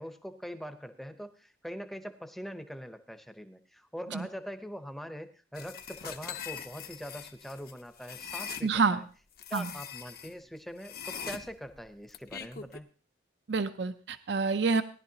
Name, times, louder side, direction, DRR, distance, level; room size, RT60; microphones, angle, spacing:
voice 1, 0.0-9.1 9.5-12.8, equal, ahead, 9 dB, 0.7 m, -43 dB
sound 1, 5.6-8.7 9.4-10.3 10.8-12.8, left 7 dB, 50° left, 0.8 m, -42 dB
voice 2, 8.6-9.0 9.5-9.7 13.5-14.8, right 4 dB, 65° right, 11 dB, 0.5 m, -28 dB
18.0 x 11.0 x 2.8 m, 0.38 s
head